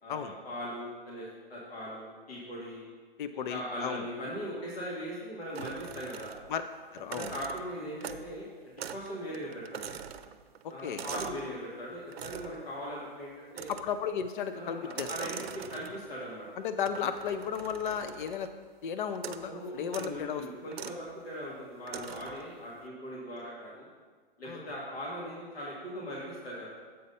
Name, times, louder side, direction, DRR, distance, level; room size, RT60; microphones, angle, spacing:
voice 1, 0.0-2.8 3.5-6.3 7.1-10.0 10.7-13.7 14.5-16.5 19.4-23.9 24.4-26.7, equal, 85° left, -6 dB, 2.1 m, -40 dB
voice 2, 3.2-4.1 6.5-6.6 6.9-7.3 10.6-11.0 13.7-15.3 16.6-18.5 18.8-20.4 24.5-24.7, left 7 dB, 55° left, 10 dB, 0.5 m, -34 dB
sound 1, 5.6-6.6 7.0-8.4 8.8-9.1 9.3-11.5 12.1-12.6 13.5-14.1 14.8-16.1 16.9-18.6 19.2-19.5 19.9-20.2 20.7-21.0 21.9-22.4, right 8 dB, 90° right, 0.5 m, -43 dB
7.7 x 4.1 x 5.5 m, 1.5 s
hypercardioid pair, 155°, 30 cm